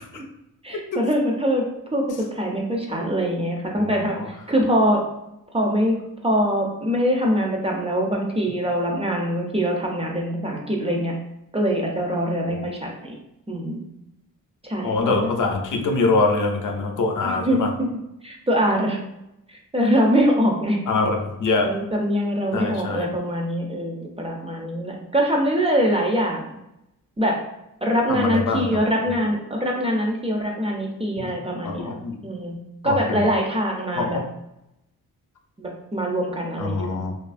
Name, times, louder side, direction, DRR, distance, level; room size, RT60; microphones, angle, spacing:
voice 1, 0.6-1.6 1.9-4.2 4.5-5.0 5.5-6.0 6.2-11.1 11.5-13.2 13.5-13.8 14.6-15.2 17.3-17.9 18.2-19.0 19.5-20.8 21.6-26.5 27.2-27.4 27.8-31.9 32.2-32.6 32.8-34.2 35.6-37.0, equal, 20° right, 0 dB, 0.3 m, -23 dB
voice 2, 3.7-4.3 12.4-12.7 14.8-17.7 20.9-21.7 22.5-23.1 28.1-28.8 31.2-31.3 31.6-32.2 32.8-33.3 34.0-34.2 36.6-37.2, left 3 dB, 65° left, 3 dB, 0.5 m, -24 dB
2.6 x 2.4 x 2.4 m, 0.86 s
wide cardioid pair, 125°, 33 cm